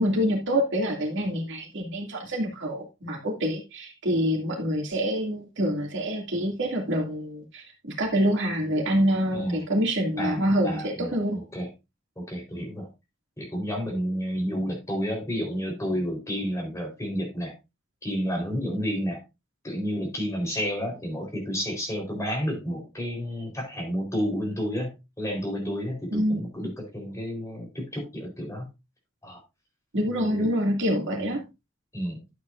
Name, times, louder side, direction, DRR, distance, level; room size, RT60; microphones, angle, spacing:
voice 1, 0.0-7.6 8.0-11.4 26.1-26.4 29.9-31.4, equal, 65° right, 2.6 m, -26 dB
voice 2, 9.3-9.7 10.2-11.7 12.2-12.9 13.4-17.5 18.0-19.2 19.6-24.9 25.2-28.7 29.2-29.4 30.1-30.5 31.9-32.2, equal, 15° left, 4.2 m, -31 dB
12.0 x 8.2 x 2.6 m
head